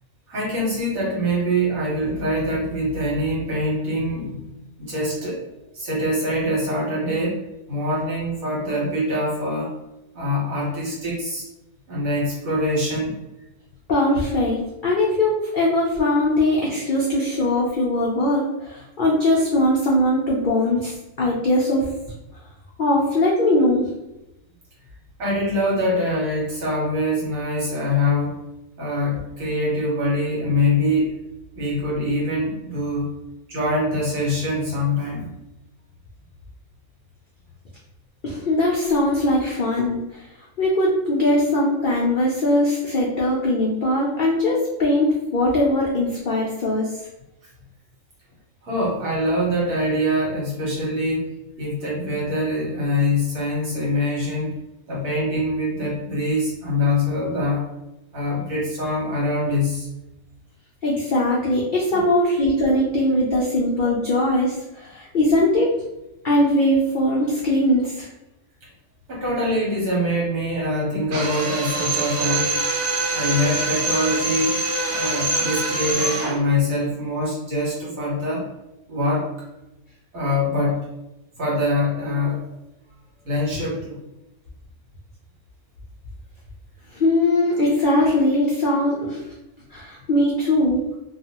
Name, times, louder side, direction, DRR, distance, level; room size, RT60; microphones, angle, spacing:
voice 1, 0.3-4.4 4.8-5.4 5.7-9.7 10.1-11.4 11.9-13.2 25.2-28.4 28.8-31.2 31.5-33.1 33.5-35.3 48.6-54.5 54.9-57.7 58.1-59.9 61.9-62.0 69.1-72.5 73.1-74.5 74.9-78.5 78.9-79.5 80.1-80.8 81.4-82.4 83.2-84.0, left 1 dB, 70° right, -4 dB, 1.5 m, -24 dB
voice 2, 13.9-20.9 21.2-21.9 22.8-23.9 38.2-40.3 40.6-46.9 60.8-65.7 66.2-68.1 86.9-89.2 89.7-91.0, left 1 dB, 80° left, -4 dB, 0.4 m, -20 dB
Drill, 71.1-76.4, right 3 dB, 85° right, 1.2 m, -24 dB
2.8 x 2.3 x 2.9 m, 0.94 s
omnidirectional pair, 1.5 m